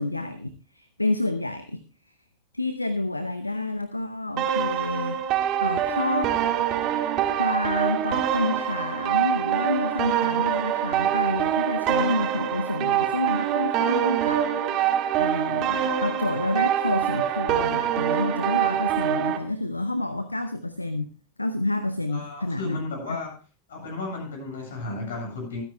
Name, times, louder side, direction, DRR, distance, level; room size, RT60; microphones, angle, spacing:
voice 1, 0.0-1.8 2.5-5.3 5.6-6.3 7.3-21.1 21.4-22.8 23.1-23.2, left 2 dB, 90° left, 12 dB, 0.7 m, -29 dB
sound 1, 4.4-19.4, right 10 dB, 40° right, 2.2 m, -25 dB
voice 2, 22.1-23.3 23.7-25.6, left 3 dB, 65° left, 1 dB, 7.7 m, -33 dB
25.0 x 9.8 x 2.2 m, 0.34 s
figure-of-eight pair, 85°, 0 cm